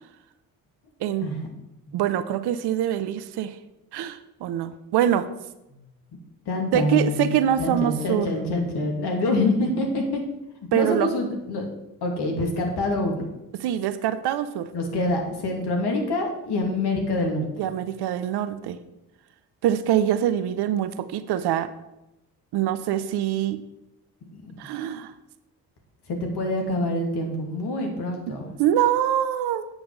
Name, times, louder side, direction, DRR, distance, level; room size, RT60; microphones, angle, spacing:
voice 1, 1.9-3.6 3.9-5.3 6.7-8.3 10.7-11.1 13.6-14.7 17.6-18.8 19.6-21.7 22.5-23.6 24.6-25.1 28.3-29.7, right 11 dB, 55° right, 13 dB, 0.8 m, -24 dB
voice 2, 6.5-7.3 7.6-10.2 10.7-11.7 12.0-13.2 14.7-17.5 24.4-24.5 26.1-28.5, left 2 dB, 55° left, 2 dB, 2.6 m, -26 dB
8.6 x 6.2 x 6.4 m, 0.92 s
figure-of-eight pair, 40°, 47 cm